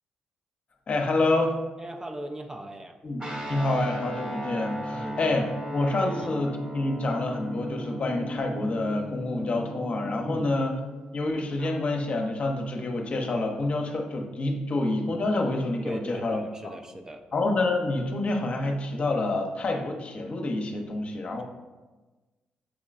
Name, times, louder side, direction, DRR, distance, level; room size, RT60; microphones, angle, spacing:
voice 1, 0.9-1.6 3.0-10.7 11.1-16.4 17.3-21.4, left 2 dB, 50° left, 2 dB, 0.7 m, -27 dB
voice 2, 1.8-3.0 4.9-5.2 6.0-6.3 10.2-10.5 15.8-17.2, right 1 dB, 20° right, 5 dB, 0.4 m, -38 dB
Guitar, 3.2-11.7, right 1 dB, 40° right, 1.0 m, -37 dB
6.1 x 3.0 x 2.4 m, 1.2 s
supercardioid pair, 65°, 3 cm